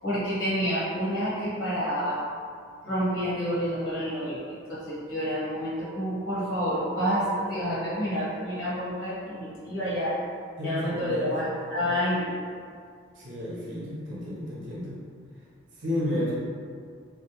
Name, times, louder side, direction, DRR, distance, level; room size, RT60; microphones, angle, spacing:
voice 1, 0.0-2.2 2.8-10.1 10.6-12.3 16.1-16.2, equal, 65° left, -10 dB, 1.2 m, -29 dB
voice 2, 10.6-11.4 13.1-15.0 15.8-16.3, left 1 dB, 65° right, -7 dB, 0.7 m, -32 dB
2.2 x 2.2 x 2.8 m, 2.2 s
head